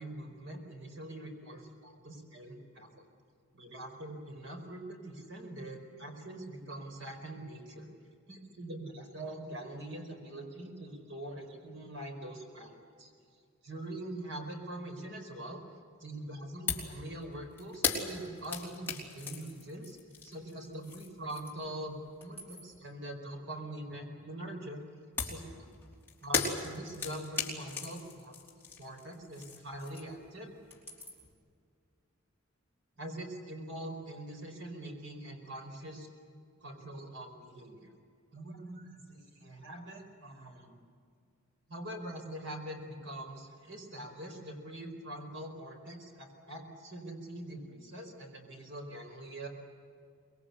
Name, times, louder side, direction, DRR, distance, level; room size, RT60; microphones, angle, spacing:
voice 1, 0.0-3.1 3.5-7.9 8.3-13.1 13.6-15.6 16.0-20.0 20.2-24.8 25.2-25.7 26.2-28.3 28.8-30.5 33.0-36.1 36.6-37.9 38.3-40.8 41.7-49.5, right 1 dB, 60° right, 3 dB, 5.0 m, -43 dB
sound 1, 16.7-17.0 17.2-21.7 22.1-22.8 25.2-30.3 30.5-31.3, left 4 dB, 10° left, 3.5 m, -37 dB
25.0 x 21.5 x 8.5 m, 2.2 s
head